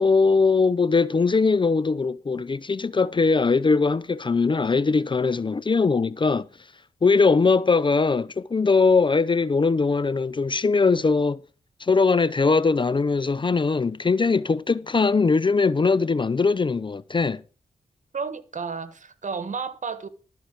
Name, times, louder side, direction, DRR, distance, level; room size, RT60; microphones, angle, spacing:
voice 1, 0.0-6.5 7.0-11.4 11.8-17.4, left 4 dB, 30° left, 0.5 m, -21 dB
voice 2, 18.1-20.1, right 5 dB, 55° right, 1.4 m, -32 dB
12.5 x 4.5 x 8.0 m
supercardioid pair, 45°, 15 cm